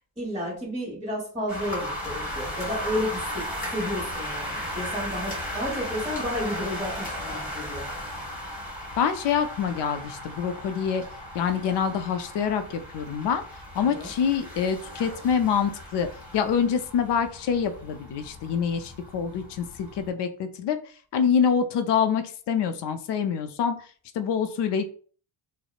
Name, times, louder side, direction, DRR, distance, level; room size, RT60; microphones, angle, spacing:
voice 1, 0.2-7.9 13.8-14.1, left 1 dB, 10° right, -7 dB, 1.1 m, -32 dB
sound 1, 1.5-20.1, equal, 15° left, 1.2 m, -36 dB
voice 2, 9.0-11.0 11.3-13.4 13.7-16.1 16.3-20.8 21.1-23.8 24.1-24.8, left 7 dB, 55° left, 9 dB, 0.5 m, -26 dB
2.8 x 2.0 x 2.4 m, 0.43 s
cardioid pair, 100°, 50 cm